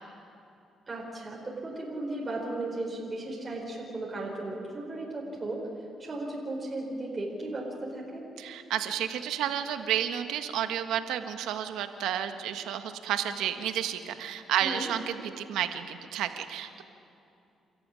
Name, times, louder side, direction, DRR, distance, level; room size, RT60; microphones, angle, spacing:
voice 1, 0.9-5.6 6.0-8.2 14.6-14.9, right 2 dB, 30° right, -2 dB, 4.9 m, -35 dB
voice 2, 8.4-16.8, right 10 dB, 85° right, 8 dB, 1.5 m, -31 dB
28.0 x 14.0 x 9.8 m, 2.7 s
cardioid pair, 90°, 0 cm